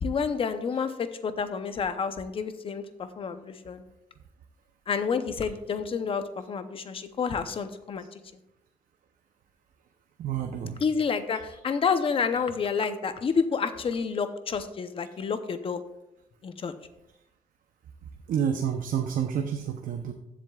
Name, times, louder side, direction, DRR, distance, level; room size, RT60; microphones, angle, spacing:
voice 1, 0.0-3.8 4.9-8.2 10.8-15.8 16.4-16.7, left 5 dB, 40° left, 10 dB, 0.7 m, -29 dB
voice 2, 10.2-10.8 18.3-20.1, right 8 dB, 70° right, 5 dB, 0.7 m, -29 dB
15.0 x 7.6 x 2.4 m, 0.87 s
cardioid pair, 145°, 15 cm